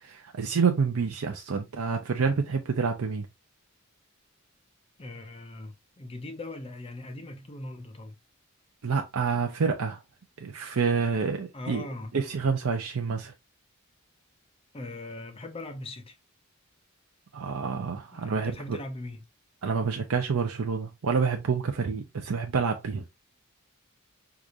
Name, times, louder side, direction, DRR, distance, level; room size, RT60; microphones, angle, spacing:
voice 1, 0.0-3.3 8.8-10.0 10.4-11.8 12.1-13.3 17.3-18.8 19.6-23.0, right 5 dB, 75° right, 0.5 m, -28 dB
voice 2, 5.0-8.2 11.5-12.1 14.7-16.2 18.1-19.2, left 2 dB, 25° left, 0.5 m, -40 dB
4.7 x 2.5 x 2.5 m
head